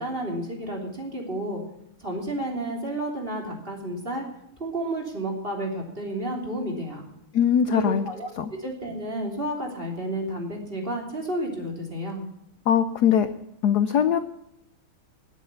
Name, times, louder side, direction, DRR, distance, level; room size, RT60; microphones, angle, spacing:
voice 1, 0.0-1.6 2.0-4.2 4.6-7.0 7.7-8.3 8.6-12.2, right 1 dB, 25° right, 0 dB, 3.3 m, -31 dB
voice 2, 7.3-8.0 8.4-8.5 12.7-13.3 13.6-14.2, left 8 dB, 65° left, 11 dB, 1.0 m, -21 dB
18.5 x 8.2 x 7.0 m, 0.79 s
omnidirectional pair, 2.4 m